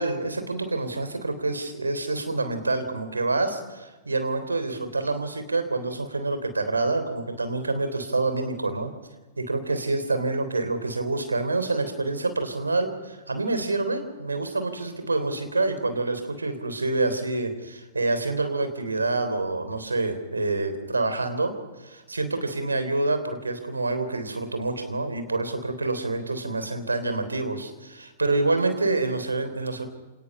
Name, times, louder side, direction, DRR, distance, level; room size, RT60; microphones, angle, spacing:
voice 1, 0.0-8.9 9.4-29.9, right 2 dB, 80° right, 9 dB, 3.5 m, -27 dB
28.0 x 19.0 x 5.5 m, 1.1 s
figure-of-eight pair, 100°, 0 cm